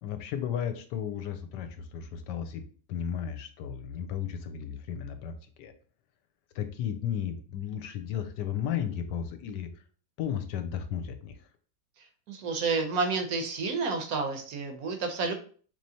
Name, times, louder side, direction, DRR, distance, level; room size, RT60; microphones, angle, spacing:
voice 1, 0.0-2.6 2.9-5.7 6.5-9.7 10.2-11.4, left 9 dB, 85° left, 8 dB, 1.2 m, -34 dB
voice 2, 12.3-15.3, right 4 dB, 65° right, 4 dB, 1.0 m, -30 dB
4.8 x 3.1 x 2.8 m, 0.43 s
omnidirectional pair, 1.8 m